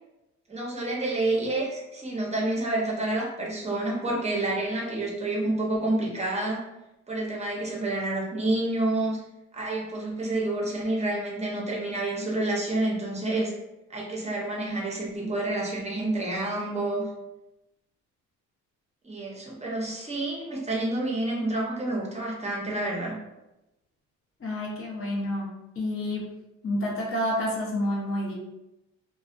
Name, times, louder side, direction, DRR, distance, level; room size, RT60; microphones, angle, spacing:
voice 1, 0.5-6.6 7.1-9.2 9.5-13.5 13.9-17.0 19.0-23.1, right 2 dB, 20° right, -2 dB, 0.6 m, -28 dB
voice 2, 24.4-25.5 25.8-26.3 26.6-28.3, left 1 dB, 45° left, -4 dB, 0.8 m, -29 dB
2.3 x 2.1 x 2.5 m, 0.95 s
cardioid pair, 90°, 30 cm